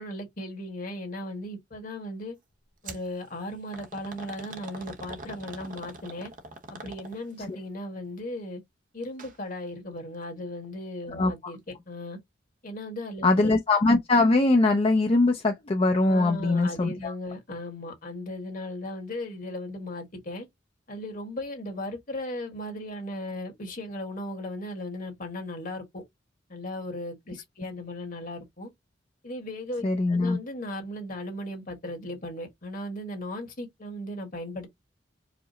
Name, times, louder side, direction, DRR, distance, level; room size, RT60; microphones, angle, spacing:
voice 1, 0.0-2.3 2.8-6.3 6.7-8.6 8.9-12.2 12.6-13.5 16.0-20.5 20.9-26.0 26.5-28.7 29.2-34.7, left 1 dB, 50° left, 1.5 m, -37 dB
sound 1, 2.8-3.1 3.7-7.4 9.0-9.3 9.7-9.8 10.6-10.7, right 3 dB, 45° right, 0.9 m, -43 dB
voice 2, 13.2-17.1 29.8-30.4, left 2 dB, 30° left, 0.5 m, -22 dB
4.9 x 2.0 x 3.8 m
head